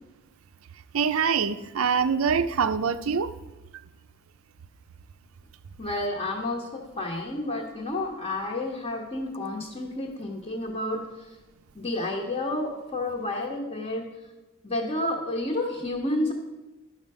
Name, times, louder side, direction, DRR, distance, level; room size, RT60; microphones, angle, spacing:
voice 1, 0.9-3.3, right 6 dB, 85° right, 12 dB, 0.5 m, -24 dB
voice 2, 5.8-11.3 11.7-14.1 14.6-16.3, left 1 dB, 30° left, -3 dB, 1.2 m, -30 dB
11.0 x 6.5 x 5.5 m, 1.1 s
head